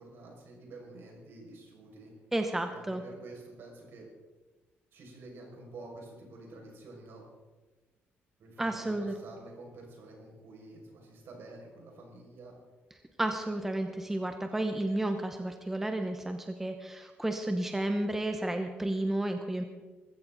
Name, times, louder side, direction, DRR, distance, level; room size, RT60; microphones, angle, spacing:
voice 1, 0.0-2.1 2.7-4.0 4.9-7.2 8.4-12.6, right 2 dB, 65° right, -1 dB, 6.0 m, -49 dB
voice 2, 2.3-3.0 8.6-9.1 13.2-19.6, right 1 dB, 10° right, 5 dB, 0.9 m, -32 dB
21.5 x 15.5 x 4.0 m, 1.3 s
cardioid pair, 175°, 4 cm